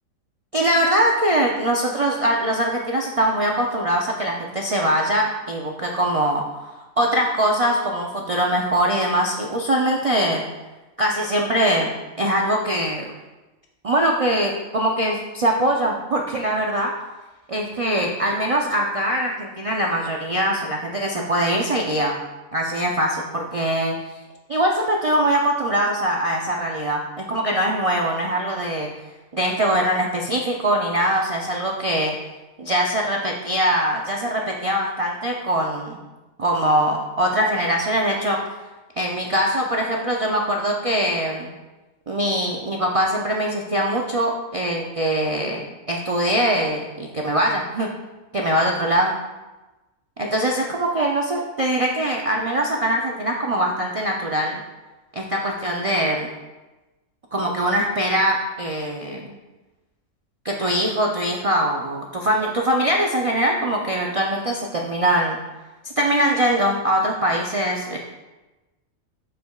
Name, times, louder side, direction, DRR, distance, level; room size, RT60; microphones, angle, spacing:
voice 1, 0.5-6.4 7.0-10.4 11.0-11.9 12.2-13.1 13.8-16.9 17.5-22.2 22.5-23.9 24.5-28.9 29.3-32.1 32.6-36.0 36.4-38.4 39.0-41.5 42.1-47.9 48.3-49.1 50.2-54.6 55.1-56.3 57.3-59.2 60.4-65.4 65.8-68.0, right 1 dB, 65° right, -1 dB, 0.3 m, -22 dB
11.5 x 4.9 x 2.3 m, 1.1 s
omnidirectional pair, 1.4 m